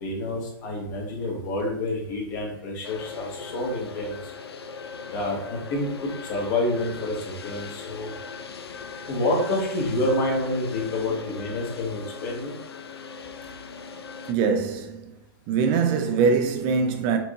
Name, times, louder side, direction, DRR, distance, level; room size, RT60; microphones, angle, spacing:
voice 1, 0.0-4.2 5.1-8.1 9.1-12.6, left 1 dB, 50° left, 1.2 m, -28 dB
sound 1, 2.8-14.3, left 5 dB, 85° left, 0.4 m, -39 dB
voice 2, 14.3-15.1 15.5-17.2, right 5 dB, 35° right, 0.4 m, -23 dB
4.6 x 2.7 x 2.4 m
hypercardioid pair, 110°, 13 cm